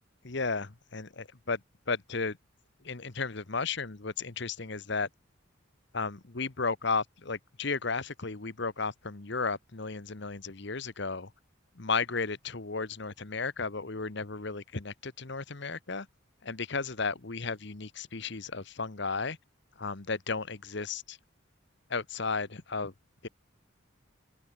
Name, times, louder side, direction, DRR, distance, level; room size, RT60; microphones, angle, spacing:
voice 1, 0.2-1.6 1.9-2.4 2.8-5.1 5.9-11.3 11.7-16.1 16.4-19.4 19.8-21.2 21.9-22.9 23.2-23.3, left 4 dB, 55° left, 1.2 m, -34 dB
open air
head